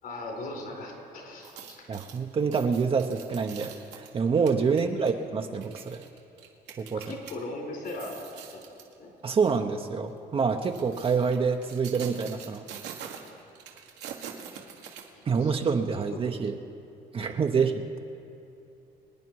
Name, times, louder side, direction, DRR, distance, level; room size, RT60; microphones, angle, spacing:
voice 1, 0.0-1.9 4.7-5.1 7.1-8.6 9.0-9.1 15.1-15.5 15.9-16.2 17.5-17.6, left 2 dB, 65° left, 0 dB, 4.1 m, -39 dB
sound 1, 1.3-7.3 7.8-8.9 9.4-9.6 10.4-15.5 15.9-16.0, right 8 dB, 85° right, 1.8 m, -45 dB
voice 2, 1.9-6.0 6.8-7.0 9.2-12.6 15.3-16.6 17.1-18.0, right 5 dB, 35° right, 4 dB, 0.8 m, -27 dB
25.5 x 9.6 x 4.7 m, 2.8 s
cardioid pair, 110°, 17 cm